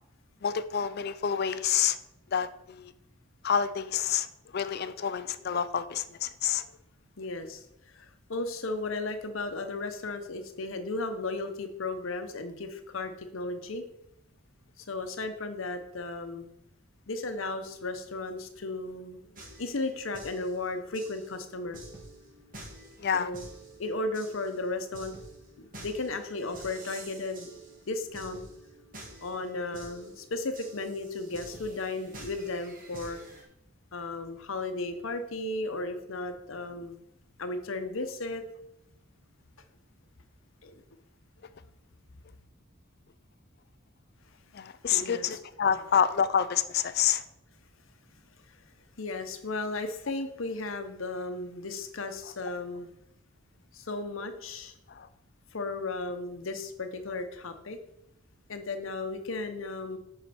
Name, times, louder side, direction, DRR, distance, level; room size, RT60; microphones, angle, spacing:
voice 1, 0.4-2.0 2.3-2.9 3.4-4.3 4.5-6.6 23.0-23.3 44.5-47.2 54.9-55.1, left 8 dB, 50° left, 13 dB, 0.4 m, -28 dB
voice 2, 7.2-7.6 7.9-13.8 14.8-16.5 17.1-21.8 23.1-23.5 23.8-25.2 25.6-27.5 27.9-28.4 29.2-33.2 33.9-37.0 37.4-38.4 40.6-40.8 44.9-45.4 49.0-52.9 53.7-54.7 55.5-57.8 58.5-60.0, left 2 dB, 70° left, 8 dB, 0.9 m, -35 dB
sound 1, 19.3-33.4, right 2 dB, 40° right, 2.0 m, -49 dB
8.3 x 5.9 x 4.3 m, 0.79 s
head